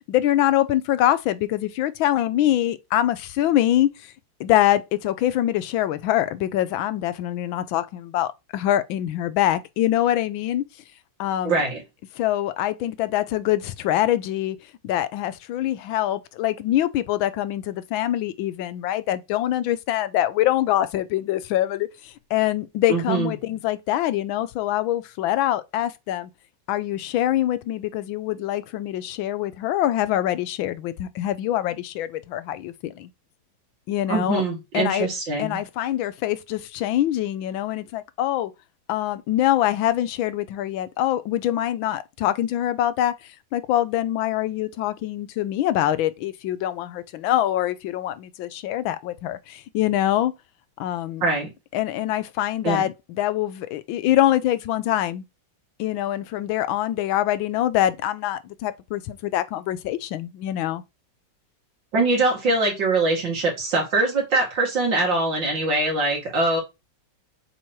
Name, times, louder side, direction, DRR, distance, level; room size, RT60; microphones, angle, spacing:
voice 1, 0.1-4.1 4.4-10.7 11.2-11.6 12.2-14.6 14.8-26.3 26.7-33.1 33.9-34.4 34.7-35.1 35.4-38.5 38.9-50.3 50.8-51.2 51.7-55.2 55.8-60.8, left 13 dB, 85° left, 1.4 m, -24 dB
voice 2, 11.4-11.8 22.9-23.3 34.1-35.6 51.2-51.5 52.6-52.9 61.9-66.6, right 3 dB, 70° right, 2.9 m, -23 dB
7.3 x 3.1 x 4.3 m
omnidirectional pair, 2.1 m